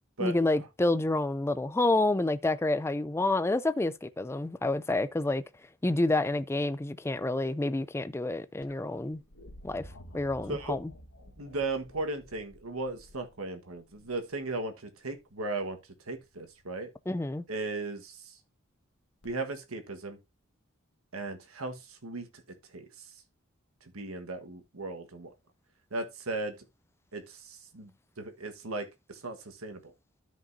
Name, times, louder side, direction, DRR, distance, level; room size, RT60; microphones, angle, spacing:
voice 1, 0.2-5.4 5.8-9.2 9.6-9.8 10.1-10.9 17.1-17.4, left 2 dB, 10° left, 0.4 m, -28 dB
sound 1, 8.6-14.5 16.1-16.7 19.2-19.3, left 1 dB, 90° left, 1.5 m, -52 dB
voice 2, 11.4-15.8 16.1-16.9 17.5-18.4 19.2-20.2 21.1-22.4 22.7-23.1 23.9-25.3 25.9-26.5 27.1-27.9 28.2-29.9, right 2 dB, 90° right, 1.4 m, -36 dB
13.0 x 5.3 x 2.7 m
head